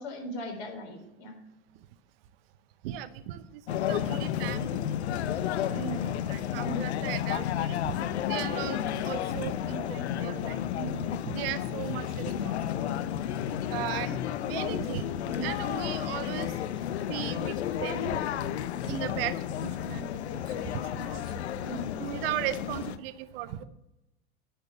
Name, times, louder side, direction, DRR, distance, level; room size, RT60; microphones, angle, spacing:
voice 1, 0.0-1.4 5.7-6.2 6.5-6.9 10.7-11.1 15.2-15.5 21.6-21.9, right 1 dB, 45° left, 2 dB, 3.9 m, -38 dB
voice 2, 2.8-8.0 8.3-10.6 11.3-12.8 13.7-15.1 15.4-16.6 17.0-18.2 18.8-21.4 22.0-23.6, right 12 dB, 60° right, 11 dB, 0.9 m, -37 dB
sound 1, 3.7-23.0, left 10 dB, 75° left, 0.7 m, -32 dB
10.0 x 4.5 x 6.9 m, 0.92 s
hypercardioid pair, 95°, 34 cm